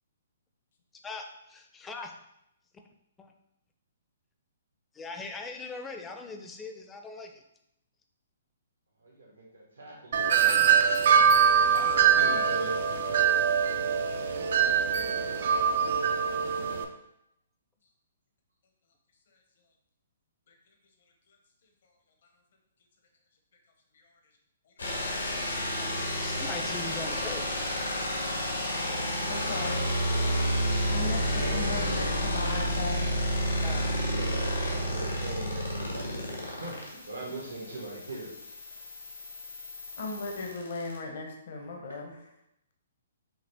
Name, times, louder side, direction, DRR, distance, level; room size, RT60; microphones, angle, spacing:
voice 1, 1.5-2.1 3.2-3.3 4.9-7.4 25.7-27.5 33.6-33.9, left 3 dB, 15° left, 4 dB, 0.5 m, -41 dB
voice 2, 9.0-10.7 11.7-12.8 14.3-15.2 28.6-30.2 31.4-32.7 34.1-38.3, right 2 dB, 85° right, -4 dB, 1.5 m, -42 dB
Wind chime, 10.1-16.8, right 7 dB, 60° right, 0.5 m, -23 dB
sound 1, 24.8-41.0, equal, 90° left, 1.4 m, -30 dB
voice 3, 29.3-29.9 30.9-33.1 40.0-42.2, left 3 dB, 60° left, 2 dB, 0.9 m, -37 dB
5.7 x 2.4 x 3.5 m, 0.81 s
hypercardioid pair, 135°, 0 cm